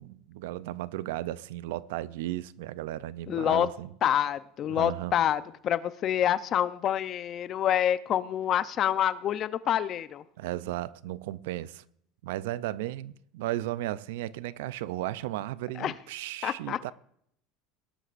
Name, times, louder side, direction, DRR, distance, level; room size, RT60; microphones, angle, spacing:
voice 1, 0.0-3.9 4.7-5.1 10.4-11.8 12.2-16.9, right 15 dB, 85° right, 0.5 m, -35 dB
voice 2, 3.3-3.7 4.0-10.2 15.8-15.9 16.4-16.9, left 10 dB, 40° left, 0.7 m, -27 dB
20.0 x 11.0 x 2.5 m
supercardioid pair, 125°, 0 cm